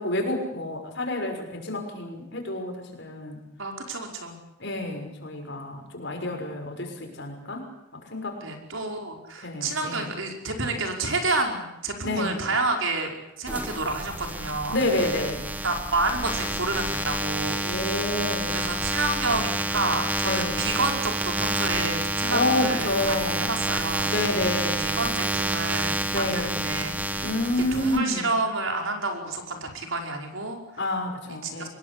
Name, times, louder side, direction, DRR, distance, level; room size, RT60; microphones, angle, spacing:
voice 1, 0.0-3.4 4.6-7.7 8.1-8.4 9.4-10.1 12.0-12.5 14.7-15.5 17.6-18.7 20.2-20.7 22.3-23.6 24.1-25.0 26.1-26.7 27.2-28.3 30.8-31.7, left 1 dB, 55° left, 4 dB, 6.3 m, -29 dB
voice 2, 3.6-4.4 8.4-13.1 13.4-14.8 15.6-17.6 17.9-18.1 18.5-24.1 24.8-26.9 27.7-30.6 31.4-31.7, right 2 dB, 70° right, 3 dB, 5.3 m, -29 dB
sound 1, 13.5-28.0, right 1 dB, 10° right, 1.7 m, -29 dB
25.0 x 21.0 x 8.7 m, 0.88 s
head